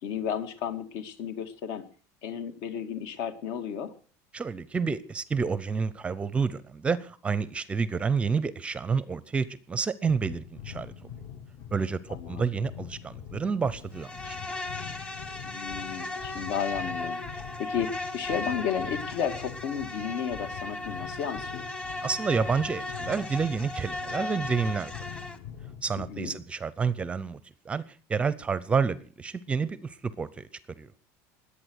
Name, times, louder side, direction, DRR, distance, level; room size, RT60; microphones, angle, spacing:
voice 1, 0.0-1.8 2.2-3.9 12.1-12.5 15.4-21.6 26.0-26.3, left 8 dB, 65° left, 9 dB, 2.2 m, -33 dB
voice 2, 4.3-10.9 11.7-14.4 22.0-24.9 25.8-27.4 27.7-27.8 28.1-30.5 30.8-30.9, right 5 dB, 15° right, 18 dB, 0.6 m, -29 dB
sound 1, 10.0-26.4, left 9 dB, 45° left, 1.4 m, -44 dB
Insect, 13.9-25.4, left 2 dB, 10° left, 1.2 m, -36 dB
21.5 x 8.5 x 6.4 m, 0.41 s
cardioid pair, 165°, 8 cm